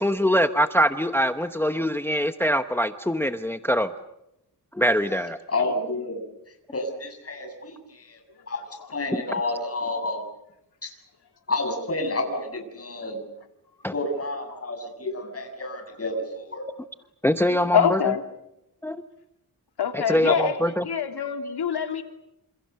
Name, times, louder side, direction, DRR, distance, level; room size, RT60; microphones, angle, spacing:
voice 1, 0.0-3.9 4.8-5.4 13.8-13.9 17.2-18.0 18.8-19.0 19.9-20.8, equal, 5° left, 9 dB, 0.9 m, -23 dB
voice 2, 5.5-6.2 6.7-8.2 8.5-10.2 10.8-10.9 11.5-13.2 13.9-16.6 20.3-20.5, left 2 dB, 35° left, 4 dB, 7.1 m, -30 dB
voice 3, 17.7-18.2 19.8-20.6 20.8-22.0, left 8 dB, 85° left, 6 dB, 3.1 m, -24 dB
29.0 x 28.0 x 6.9 m, 0.85 s
wide cardioid pair, 120°, 38 cm